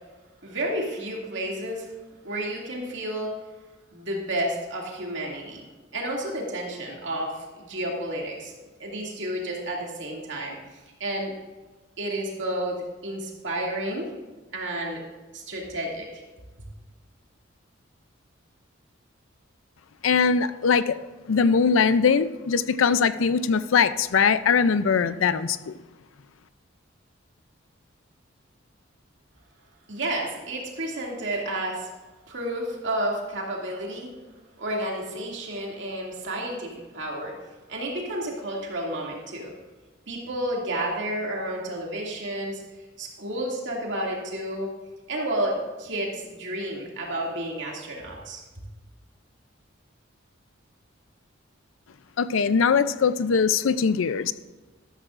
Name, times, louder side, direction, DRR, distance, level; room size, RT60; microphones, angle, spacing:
voice 1, 0.4-1.9 2.2-3.3 3.9-5.7 5.9-8.5 8.8-11.3 12.0-14.1 14.5-15.0 15.3-16.2 29.9-31.9 32.3-34.1 34.6-37.4 37.7-39.5 40.1-42.6 43.0-44.7 45.1-48.4, right 1 dB, 65° right, -2 dB, 2.4 m, -31 dB
voice 2, 20.0-20.9 21.3-25.7 52.2-54.3, left 6 dB, 80° left, 14 dB, 0.5 m, -21 dB
13.0 x 12.5 x 2.5 m, 1.2 s
head